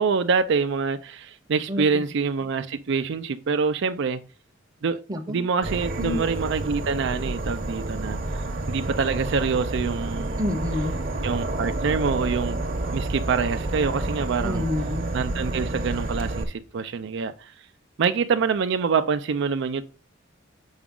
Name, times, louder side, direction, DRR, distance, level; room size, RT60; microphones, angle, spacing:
voice 1, 0.0-4.2 4.8-5.0 5.3-8.2 8.7-10.4 11.2-12.6 12.9-14.7 15.1-17.5 18.0-19.8, right 5 dB, 65° right, 0.4 m, -25 dB
voice 2, 1.7-2.1 5.1-5.4 6.0-6.2 10.4-11.0 14.4-15.2, left 1 dB, 20° right, 0.7 m, -28 dB
Insect / Frog, 5.6-16.4, right 2 dB, 45° right, 0.9 m, -29 dB
7.1 x 5.0 x 3.7 m
head